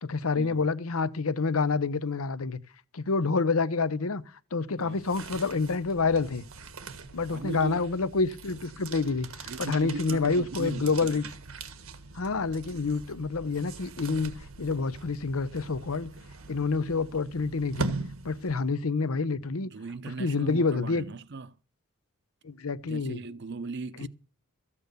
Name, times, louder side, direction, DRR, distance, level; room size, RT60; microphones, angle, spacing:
voice 1, 0.0-2.6 2.9-4.2 4.5-6.5 7.1-11.2 12.1-16.1 16.5-17.9 18.2-19.7 20.2-21.0 22.4-23.2 24.0-24.1, left 4 dB, 90° left, 0.8 m, -28 dB
sound 1, 4.8-18.9, right 3 dB, 90° right, 1.7 m, -41 dB
voice 2, 7.3-7.8 9.5-11.3 19.6-21.6 22.8-24.1, right 3 dB, 55° right, 0.7 m, -38 dB
14.0 x 8.5 x 6.8 m
head